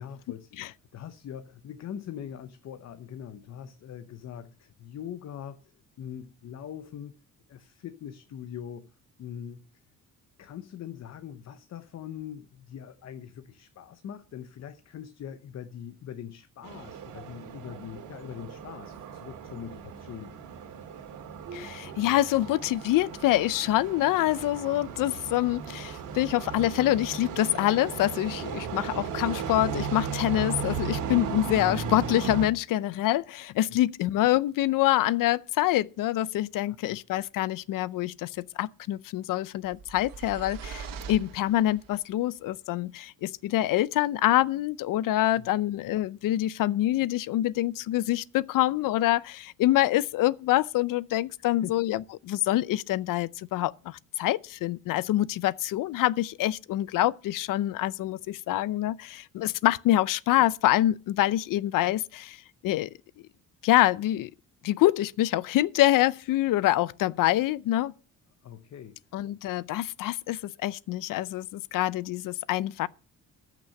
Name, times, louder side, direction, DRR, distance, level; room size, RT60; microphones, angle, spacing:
voice 1, 0.0-5.7 6.0-7.2 7.5-8.9 9.2-9.6 10.4-20.5 27.5-27.6 36.7-37.0 45.4-45.5 51.6-51.7 68.4-69.3, left 9 dB, 55° left, 0.9 m, -42 dB
sound 1, 16.6-32.5, right 6 dB, 70° right, 2.0 m, -36 dB
voice 2, 21.5-62.9 63.6-64.3 64.6-67.9 69.1-72.9, left 14 dB, 75° left, 0.6 m, -26 dB
sound 2, 39.6-42.0, right 5 dB, 90° right, 1.4 m, -42 dB
14.0 x 6.1 x 6.5 m
cardioid pair, 135°, 33 cm